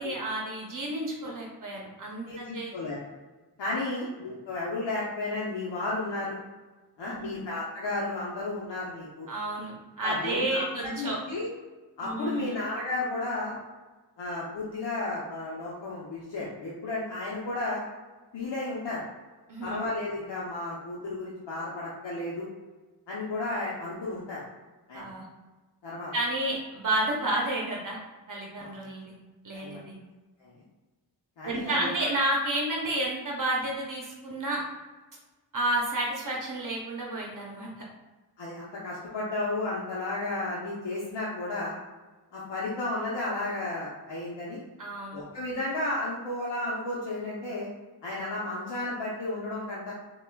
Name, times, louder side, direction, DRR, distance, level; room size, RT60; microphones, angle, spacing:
voice 1, 0.0-2.7 3.8-4.0 7.1-7.5 9.3-11.2 12.0-12.6 19.5-19.8 24.9-25.2 26.1-28.0 28.3-29.1 29.4-30.0 31.4-34.6 35.5-37.9 44.8-45.2, right 1 dB, 50° right, -2 dB, 0.8 m, -31 dB
voice 2, 2.3-3.0 3.6-6.4 7.0-9.3 10.0-10.6 11.0-11.5 12.0-13.6 14.2-17.8 18.3-19.0 19.6-22.5 23.1-24.4 24.9-25.1 25.8-26.1 28.6-28.7 29.6-29.8 30.4-30.5 31.4-31.9 38.4-41.8 42.3-44.6 45.1-47.7 48.0-49.9, left 2 dB, 85° left, -6 dB, 0.8 m, -33 dB
5.6 x 2.4 x 2.3 m, 1.2 s
cardioid pair, 75°, 42 cm